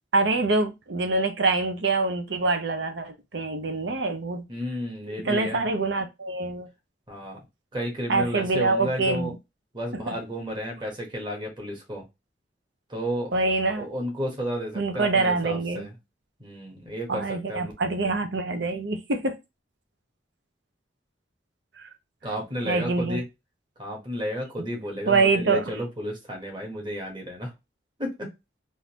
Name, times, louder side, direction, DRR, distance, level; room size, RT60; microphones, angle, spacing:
voice 1, 0.1-4.4 5.1-6.7 8.1-9.4 9.9-10.2 13.3-13.9 14.8-15.9 17.1-19.4 21.8-21.9 22.7-23.2 25.1-25.8, right 3 dB, 75° right, 0.8 m, -25 dB
voice 2, 4.5-5.7 7.1-7.4 7.7-9.3 9.7-12.0 12.9-13.3 13.7-15.9 16.4-17.7 22.2-23.3 23.8-27.5 28.0-28.3, equal, 25° right, 1.3 m, -32 dB
3.7 x 2.7 x 2.9 m
head